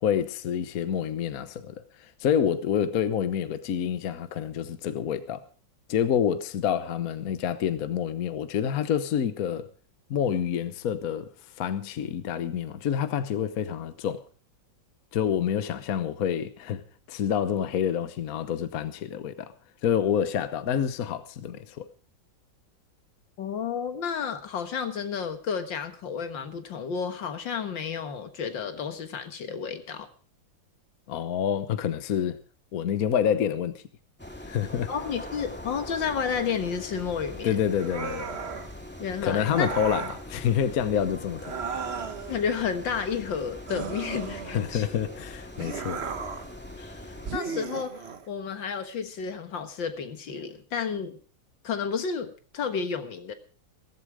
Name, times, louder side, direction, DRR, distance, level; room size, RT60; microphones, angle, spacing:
voice 1, 0.0-5.5 5.9-9.7 10.1-11.3 11.6-14.2 15.1-16.8 17.1-19.5 19.8-21.8 31.1-32.4 32.7-33.8 34.4-34.9 37.4-38.4 39.2-41.6 44.5-46.0, left 8 dB, 55° left, 1.3 m, -27 dB
voice 2, 23.4-30.1 34.9-37.5 39.0-39.7 42.3-44.9 46.8-51.2 51.6-53.3, left 6 dB, 80° left, 2.2 m, -31 dB
sound 1, 34.2-47.3, left 1 dB, 5° left, 2.0 m, -42 dB
sound 2, 37.8-38.7 39.4-40.2 41.4-42.4 43.7-44.8 45.6-46.5 47.3-48.3, right 5 dB, 40° right, 1.1 m, -35 dB
15.0 x 15.0 x 4.9 m
omnidirectional pair, 2.0 m